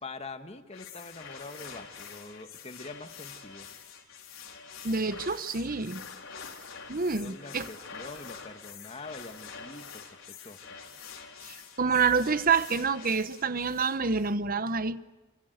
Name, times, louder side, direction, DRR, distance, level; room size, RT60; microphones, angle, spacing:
voice 1, 0.0-3.7 7.1-10.7, left 3 dB, 30° left, 1.8 m, -44 dB
sound 1, 0.7-14.3, left 6 dB, 70° left, 4.3 m, -46 dB
voice 2, 4.8-6.0 6.9-7.7 11.4-15.0, right 5 dB, 40° right, 1.0 m, -27 dB
29.0 x 25.0 x 8.0 m
head